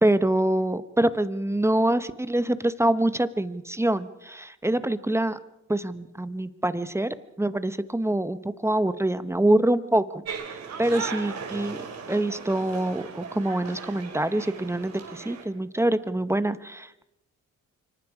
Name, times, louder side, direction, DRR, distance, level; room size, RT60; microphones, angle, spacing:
voice 1, 0.0-5.4 5.7-8.4 8.6-10.2 10.8-11.8 12.1-17.1, right 1 dB, 10° right, 13 dB, 1.1 m, -25 dB
sound 1, 10.2-15.4, right 6 dB, 60° right, 4.3 m, -37 dB
25.5 x 24.0 x 4.9 m, 0.89 s
cardioid pair, 90°, 30 cm